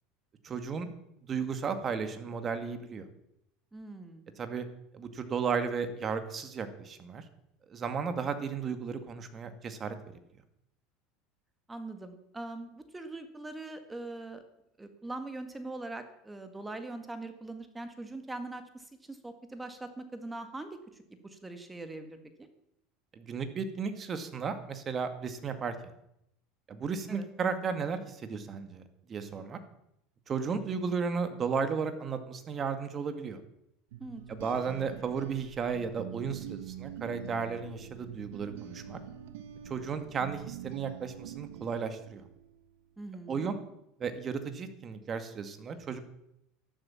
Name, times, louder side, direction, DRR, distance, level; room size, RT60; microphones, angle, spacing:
voice 1, 0.4-0.9 1.3-3.1 4.4-4.7 4.9-7.2 7.7-10.0 23.1-25.7 26.7-28.8 29.1-29.6 30.3-33.4 34.3-39.0 39.7-42.2 43.3-43.6 44.0-46.0, right 5 dB, 30° right, 9 dB, 2.1 m, -34 dB
voice 2, 3.7-4.3 11.7-14.4 14.8-22.5 27.1-27.3 34.0-34.2 34.5-34.6 43.0-43.5, right 2 dB, 10° right, 8 dB, 1.9 m, -42 dB
sound 1, 33.9-42.6, right 10 dB, 85° right, 1.2 m, -45 dB
13.0 x 12.0 x 7.2 m, 0.79 s
supercardioid pair, 125°, 0 cm